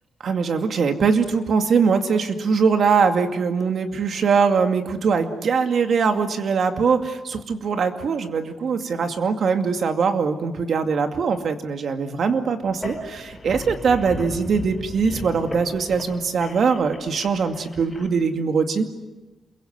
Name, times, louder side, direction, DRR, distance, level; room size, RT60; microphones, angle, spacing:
voice 1, 0.2-18.9, right 5 dB, 55° right, 6 dB, 2.3 m, -22 dB
sound 1, 12.7-18.1, left 2 dB, 10° left, 5.8 m, -37 dB
28.0 x 23.0 x 8.2 m, 1.1 s
wide cardioid pair, 135°, 0 cm